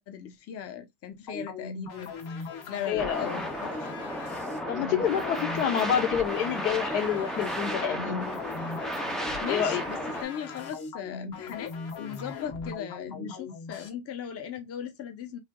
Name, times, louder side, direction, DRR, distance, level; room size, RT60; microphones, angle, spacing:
voice 1, 0.0-4.0 9.4-15.4, left 9 dB, 30° left, 0.8 m, -38 dB
sound 1, 1.3-13.9, left 4 dB, 50° left, 1.5 m, -39 dB
voice 2, 2.9-3.4 4.7-8.3 9.5-9.8, left 9 dB, 80° left, 1.0 m, -28 dB
sound 2, 3.0-10.2, equal, ahead, 0.3 m, -33 dB
3.3 x 2.8 x 2.3 m
supercardioid pair, 110°, 47 cm